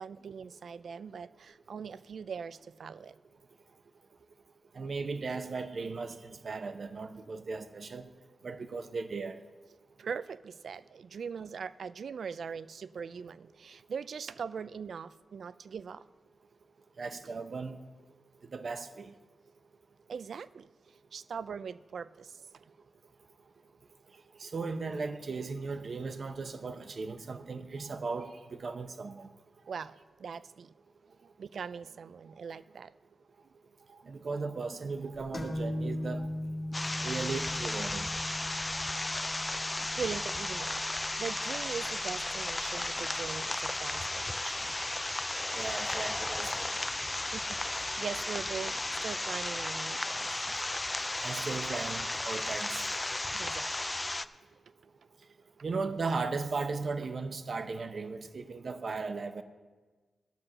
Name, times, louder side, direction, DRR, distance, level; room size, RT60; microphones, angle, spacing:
voice 1, 0.0-3.1 10.0-16.1 20.1-20.7 21.1-22.7 29.7-30.7 31.1-32.9 34.0-34.2 38.4-38.5 39.8-44.8 47.3-50.5 51.0-51.1 53.3-53.7, right 6 dB, 70° right, 0.3 m, -41 dB
voice 2, 4.7-8.1 8.4-9.4 17.0-17.8 18.5-19.1 24.4-29.3 34.1-36.3 37.0-38.1 45.5-46.7 51.2-52.8 55.6-59.4, right 4 dB, 50° right, 0.7 m, -37 dB
sound 1, 35.3-42.8, left 1 dB, 45° left, 2.0 m, -39 dB
sound 2, 36.7-54.2, left 2 dB, 20° left, 0.3 m, -34 dB
13.0 x 5.8 x 6.6 m
wide cardioid pair, 95°, 0 cm